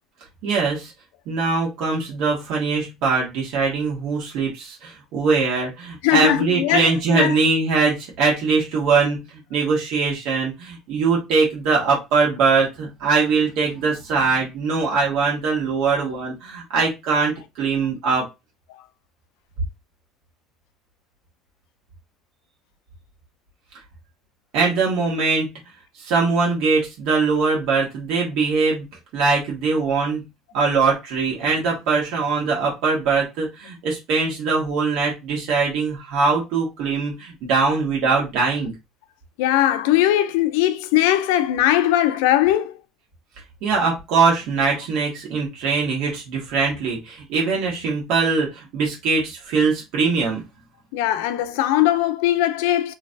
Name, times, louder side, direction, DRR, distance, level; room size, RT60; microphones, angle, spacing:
voice 1, 0.4-0.9 1.3-18.2 24.5-25.5 26.0-28.9 29.1-30.2 30.5-38.7 43.6-50.4, right 4 dB, 70° right, 1.5 m, -22 dB
voice 2, 6.0-7.4 18.7-18.8 29.8-29.9 39.4-42.8 50.9-52.9, left 13 dB, 90° left, 0.4 m, -20 dB
3.2 x 3.0 x 2.6 m
cardioid pair, 120°, 0 cm